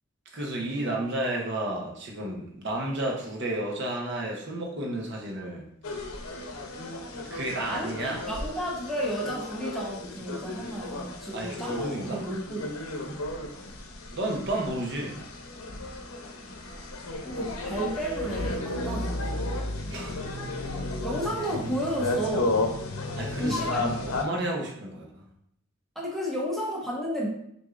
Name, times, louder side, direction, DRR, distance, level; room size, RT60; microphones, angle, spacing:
voice 1, 0.3-5.6 7.2-8.2 11.3-12.2 14.1-15.2 19.9-20.2 23.2-25.3, right 1 dB, 55° right, -1 dB, 0.9 m, -32 dB
sound 1, 5.8-24.2, left 2 dB, 80° left, 0.6 m, -33 dB
voice 2, 7.7-13.2 17.2-19.5 21.0-22.6 23.4-24.4 26.0-27.3, equal, ahead, -4 dB, 0.8 m, -33 dB
6.3 x 2.7 x 2.4 m, 0.72 s
head